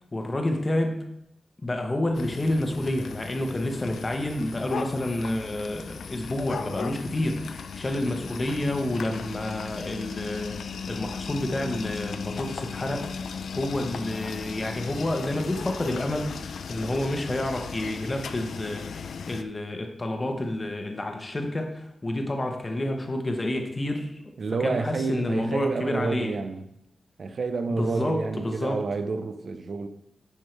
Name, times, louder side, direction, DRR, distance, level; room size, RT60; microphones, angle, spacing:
voice 1, 0.1-1.1 1.6-16.4 16.7-24.2 24.6-26.4 27.7-28.8, left 1 dB, 20° left, 1.0 m, -29 dB
sound 1, 2.1-19.4, left 6 dB, 75° left, 0.4 m, -37 dB
voice 2, 24.4-26.6 27.2-29.9, right 4 dB, 50° right, 0.6 m, -29 dB
10.5 x 5.4 x 3.3 m
wide cardioid pair, 170°, 0 cm